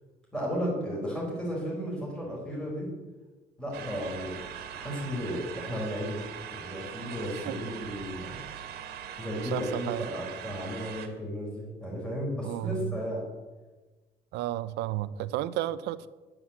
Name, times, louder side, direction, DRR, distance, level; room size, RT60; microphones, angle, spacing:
voice 1, 0.3-2.9 3.6-4.4 4.7-8.4 9.2-13.3, equal, 5° left, -5 dB, 4.4 m, -34 dB
sound 1, 3.7-11.1, right 9 dB, 65° right, 2.0 m, -41 dB
voice 2, 9.4-10.1 12.4-13.0 14.3-16.1, right 14 dB, 85° right, 15 dB, 0.8 m, -32 dB
10.5 x 9.9 x 7.8 m, 1.2 s
cardioid pair, 150°, 17 cm